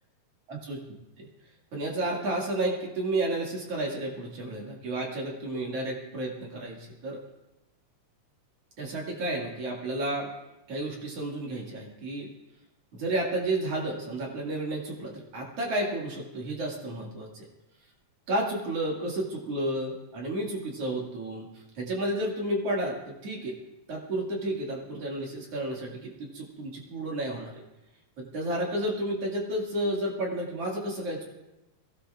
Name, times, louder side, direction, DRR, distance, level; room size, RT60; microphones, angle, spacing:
voice 1, 0.5-0.8 1.2-1.3 1.7-7.2 8.8-10.3 10.7-12.3 12.9-17.5 18.3-21.5 21.8-23.6 23.9-27.6 28.2-31.2, right 1 dB, 50° right, -1 dB, 2.8 m, -31 dB
22.5 x 16.0 x 2.4 m, 1.0 s
omnidirectional pair, 3.9 m